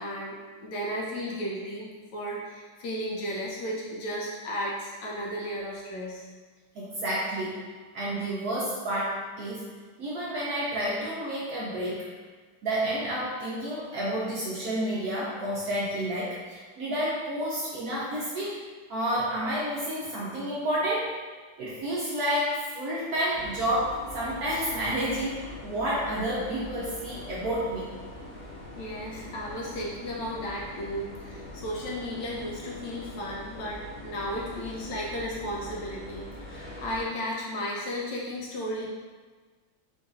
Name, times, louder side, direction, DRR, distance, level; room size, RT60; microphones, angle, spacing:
voice 1, 0.0-6.3 28.8-38.9, equal, 70° left, -4 dB, 1.3 m, -34 dB
voice 2, 6.7-7.6 7.9-9.7 10.0-12.1 12.6-18.6 18.9-21.1 21.6-27.9, right 1 dB, 65° right, -6 dB, 1.0 m, -30 dB
sound 1, 23.3-37.0, left 1 dB, 10° right, 0.9 m, -43 dB
3.9 x 2.6 x 3.8 m, 1.4 s
omnidirectional pair, 2.2 m